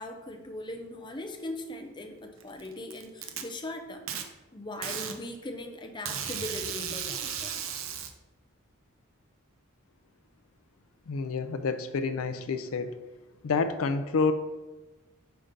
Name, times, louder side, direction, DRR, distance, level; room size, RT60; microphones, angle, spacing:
voice 1, 0.0-4.1 4.5-7.6, left 1 dB, 20° left, 5 dB, 0.6 m, -39 dB
Packing tape duct tape, 2.4-3.4 4.1-4.2 4.8-5.2 6.1-8.1, right 8 dB, 70° right, 0.6 m, -35 dB
voice 2, 11.1-12.9 13.4-14.3, left 4 dB, 80° left, 9 dB, 0.4 m, -28 dB
5.7 x 3.8 x 5.2 m, 1.2 s
head